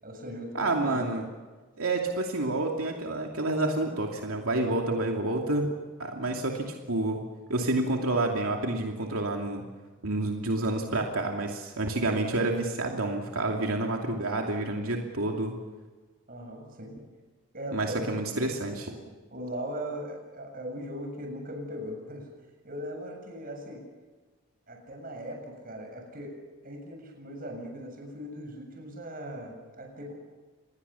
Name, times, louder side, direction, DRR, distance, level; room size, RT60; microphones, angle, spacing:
voice 1, 0.0-1.1 16.3-16.9 17.5-18.0 19.3-22.3 22.6-23.8 24.7-26.4 26.6-30.1, equal, 40° right, 2 dB, 7.4 m, -39 dB
voice 2, 0.5-1.2 1.8-5.7 6.0-7.2 7.5-9.6 10.0-15.5 17.7-18.9, right 2 dB, 75° right, 1 dB, 2.7 m, -29 dB
28.0 x 20.5 x 7.1 m, 1.3 s
head